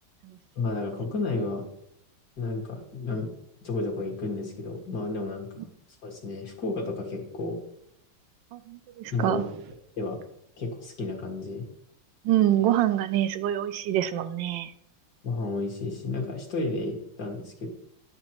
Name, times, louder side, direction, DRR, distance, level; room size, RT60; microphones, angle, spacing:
voice 1, 0.6-1.6 2.4-3.3 3.6-5.7 6.0-7.6 9.1-9.4 10.0-10.2 10.6-11.6 15.2-17.7, left 3 dB, 55° left, 0 dB, 2.4 m, -32 dB
voice 2, 8.5-9.5 12.2-14.7, right 12 dB, 75° right, 11 dB, 1.2 m, -26 dB
11.5 x 9.6 x 3.0 m, 0.77 s
omnidirectional pair, 2.1 m